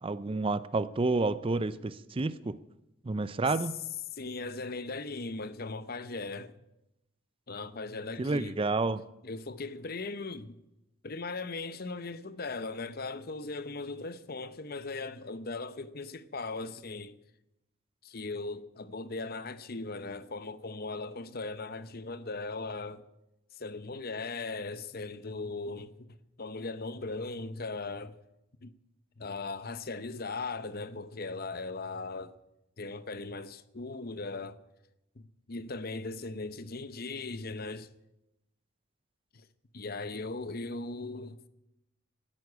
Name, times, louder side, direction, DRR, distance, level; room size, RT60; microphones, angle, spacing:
voice 1, 0.0-2.5 3.0-3.8 8.2-9.0, right 3 dB, 25° right, 0.4 m, -29 dB
voice 2, 4.1-6.5 7.5-8.6 9.2-10.6 11.0-17.2 18.0-23.0 23.5-28.2 28.6-28.7 29.2-32.4 32.8-34.6 35.2-37.9 39.3-39.5 39.7-41.5, left 3 dB, 45° left, 0.8 m, -38 dB
13.0 x 11.0 x 9.6 m
head